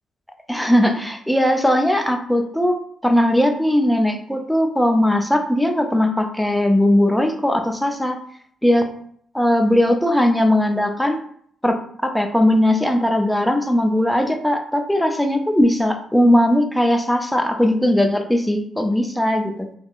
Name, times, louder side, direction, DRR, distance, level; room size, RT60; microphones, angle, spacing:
voice 1, 0.5-2.8 3.0-8.2 8.6-8.9 9.3-11.2 11.6-19.7, left 1 dB, 5° left, 4 dB, 0.5 m, -18 dB
3.6 x 2.0 x 2.4 m, 0.63 s
supercardioid pair, 55°, 0 cm